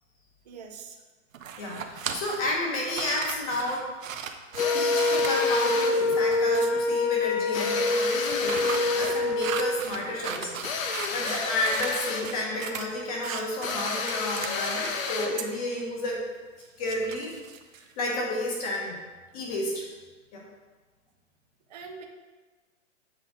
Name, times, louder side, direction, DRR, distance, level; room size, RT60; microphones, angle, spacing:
voice 1, 0.5-1.0 21.7-22.0, right 5 dB, 30° right, 1 dB, 0.5 m, -43 dB
sound 1, 1.3-7.0 8.1-11.9 12.2-12.9 13.2-15.0 15.4-15.5 16.6-18.1, right 7 dB, 80° right, 0.8 m, -38 dB
voice 2, 1.6-3.9 4.7-10.5 11.1-16.2 16.8-17.3 18.0-19.0 19.3-19.9 20.3-20.4, left 1 dB, 30° left, -2 dB, 1.3 m, -31 dB
sound 2, 4.6-6.0 7.5-9.2 10.6-12.4 13.6-15.4, left 5 dB, 85° left, 1.0 m, -31 dB
Wind instrument woodwind instrument, 4.6-9.8, left 3 dB, 45° left, 0.6 m, -25 dB
7.7 x 5.0 x 3.8 m, 1.3 s
hypercardioid pair, 170°, 39 cm